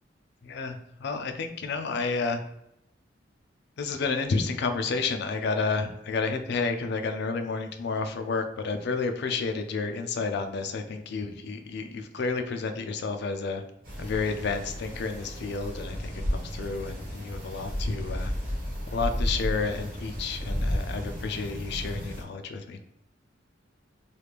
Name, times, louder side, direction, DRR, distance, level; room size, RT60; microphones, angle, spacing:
voice 1, 0.4-2.4 3.8-13.6 14.0-18.3 18.9-22.8, left 4 dB, 60° left, 7 dB, 0.4 m, -31 dB
sound 1, 13.8-22.2, equal, 50° right, 1.2 m, -33 dB
3.1 x 2.4 x 3.3 m, 0.84 s
head